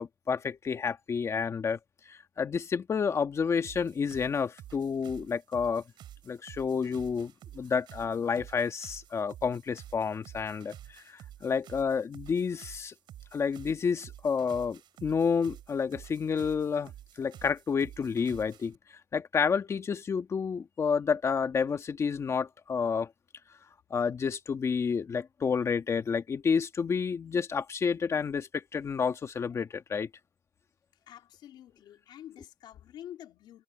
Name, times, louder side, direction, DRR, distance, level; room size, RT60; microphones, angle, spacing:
voice 1, 0.0-1.8 2.1-5.8 6.3-12.9 13.3-16.9 17.2-18.8 19.1-23.1 23.9-30.1, left 6 dB, 40° left, 1.7 m, -30 dB
sound 1, 3.6-18.7, right 11 dB, 80° right, 7.9 m, -50 dB
voice 2, 31.1-33.6, left 11 dB, 85° left, 3.1 m, -48 dB
cardioid pair, 130°, 8 cm